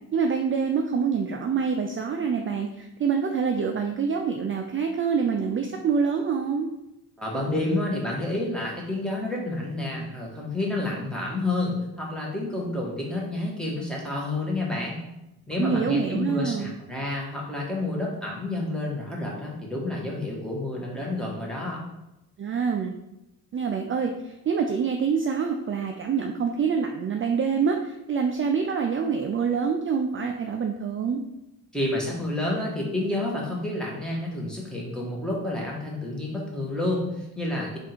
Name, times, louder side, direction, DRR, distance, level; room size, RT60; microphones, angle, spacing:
voice 1, 0.1-6.7 15.6-16.8 22.4-22.9 23.5-31.2, right 6 dB, 35° right, 3 dB, 0.4 m, -26 dB
voice 2, 7.2-15.0 15.5-21.8 31.7-37.8, left 2 dB, ahead, -3 dB, 1.3 m, -29 dB
3.6 x 2.6 x 4.3 m, 0.90 s
cardioid pair, 75°, 36 cm